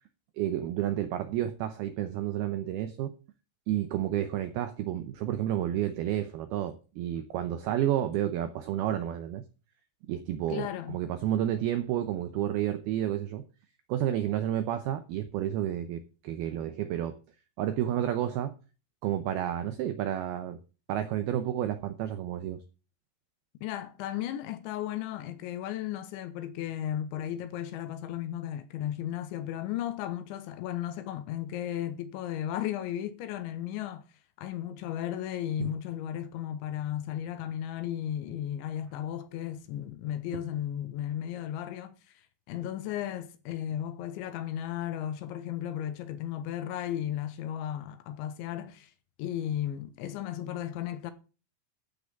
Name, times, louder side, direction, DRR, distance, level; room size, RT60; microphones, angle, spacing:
voice 1, 0.4-3.1 3.7-9.4 10.1-13.4 13.9-17.2 17.6-18.5 19.0-20.6 20.9-22.6 35.6-35.7, right 11 dB, 85° right, 2.2 m, -30 dB
voice 2, 10.5-11.0 23.6-34.0 34.4-42.0 42.5-48.9 49.2-51.1, left 11 dB, 80° left, 3.2 m, -35 dB
12.5 x 5.1 x 8.2 m
omnidirectional pair, 5.5 m